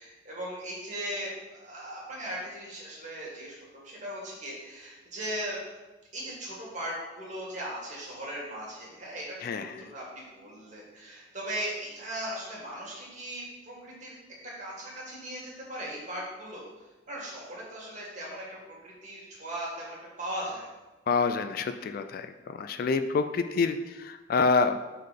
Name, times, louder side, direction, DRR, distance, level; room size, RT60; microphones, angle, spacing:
voice 1, 0.0-5.6 6.1-14.1 14.4-20.7, right 1 dB, 40° right, -5 dB, 2.0 m, -38 dB
voice 2, 9.4-9.9 21.1-24.8, left 4 dB, 50° left, 9 dB, 0.3 m, -27 dB
5.4 x 3.9 x 5.1 m, 1.2 s
head